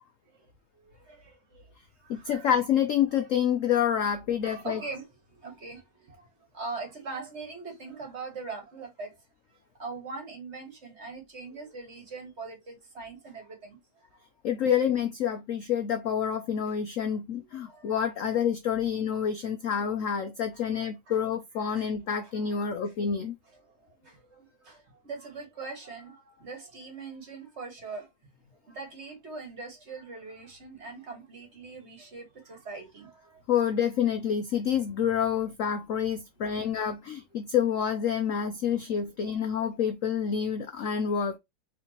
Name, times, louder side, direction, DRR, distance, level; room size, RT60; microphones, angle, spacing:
voice 1, 0.8-1.7 2.0-2.5 3.1-3.3 4.4-9.1 9.8-14.3 17.0-17.2 17.5-18.0 20.5-20.7 21.1-21.2 21.6-21.9 22.2-23.0 23.5-33.4 36.5-36.7 37.3-37.4 39.6-39.7, right 4 dB, 35° right, 1.7 m, -42 dB
voice 2, 2.1-4.8 14.4-23.4 33.5-41.4, left 8 dB, 80° left, 0.7 m, -28 dB
4.4 x 3.6 x 2.8 m
omnidirectional pair, 2.1 m